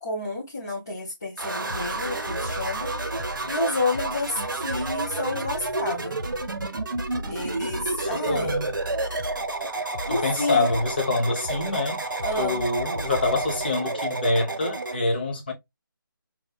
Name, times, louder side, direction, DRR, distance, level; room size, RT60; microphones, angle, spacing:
voice 1, 0.0-2.9 3.5-6.2 7.3-8.6 10.1-10.7 12.2-12.6, left 2 dB, 10° left, 0.4 m, -30 dB
sound 1, 1.4-15.0, right 3 dB, 60° right, 0.9 m, -31 dB
sound 2, 1.7-13.7, left 1 dB, 65° left, 1.0 m, -39 dB
voice 2, 8.0-8.7 10.1-15.5, left 2 dB, 25° left, 0.9 m, -26 dB
5.6 x 2.2 x 2.3 m
figure-of-eight pair, 170°, 12 cm